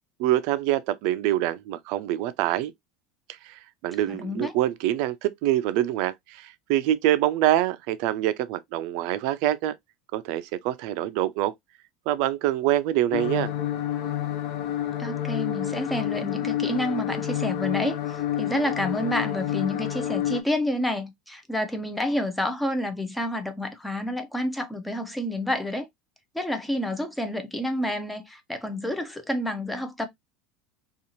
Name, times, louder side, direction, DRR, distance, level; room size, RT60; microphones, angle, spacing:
voice 1, 0.2-2.7 3.4-9.7 10.1-11.5 12.1-13.5, right 13 dB, 60° right, 0.4 m, -25 dB
voice 2, 4.1-4.5 15.0-25.9 26.3-30.1, left 1 dB, 5° left, 0.5 m, -29 dB
sound 1, 13.1-20.4, left 11 dB, 55° left, 0.5 m, -29 dB
2.6 x 2.4 x 2.8 m
cardioid pair, 160°, 0 cm